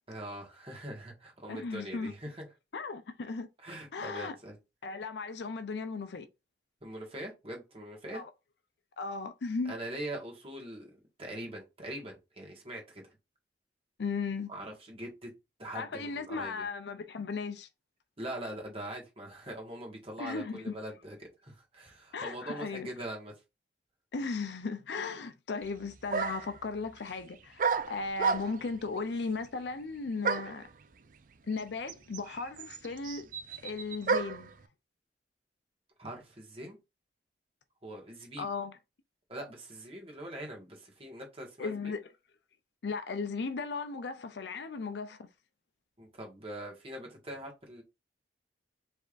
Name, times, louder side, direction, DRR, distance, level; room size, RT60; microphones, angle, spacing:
voice 1, 0.1-2.5 3.6-4.6 6.8-8.2 9.7-13.1 14.5-15.3 15.6-16.6 18.2-23.3 36.0-36.8 37.8-38.5 39.3-41.9 46.0-47.8, right 1 dB, 35° right, 1.6 m, -42 dB
voice 2, 1.5-2.1 2.7-3.5 3.9-4.4 4.8-6.3 8.1-8.3 9.0-9.7 14.0-14.5 15.7-17.7 20.2-20.8 22.1-22.9 24.1-30.6 31.5-33.3 33.6-34.5 38.4-38.7 41.6-42.0 42.8-45.3, left 4 dB, 75° left, 0.5 m, -36 dB
sound 1, 25.6-25.7 26.1-26.6 27.6-28.7 30.2-30.6 31.6-31.7 31.9-34.5, right 5 dB, 50° right, 0.4 m, -31 dB
5.2 x 3.4 x 2.5 m
head